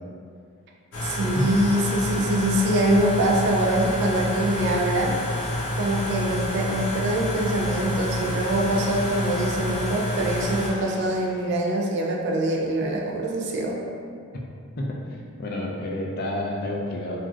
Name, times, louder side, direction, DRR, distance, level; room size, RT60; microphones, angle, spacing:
sound 1, 0.9-10.7, left 1 dB, 75° left, 0.7 m, -28 dB
voice 1, 1.0-5.2 5.7-13.8, right 1 dB, 50° right, -1 dB, 0.3 m, -24 dB
Water / Splash splatter, 8.0-11.8 12.3-12.4 12.7-12.8, equal, 15° left, 0.8 m, -45 dB
voice 2, 15.4-17.2, left 1 dB, 45° left, -2 dB, 0.3 m, -29 dB
3.1 x 2.4 x 2.4 m, 2.3 s
head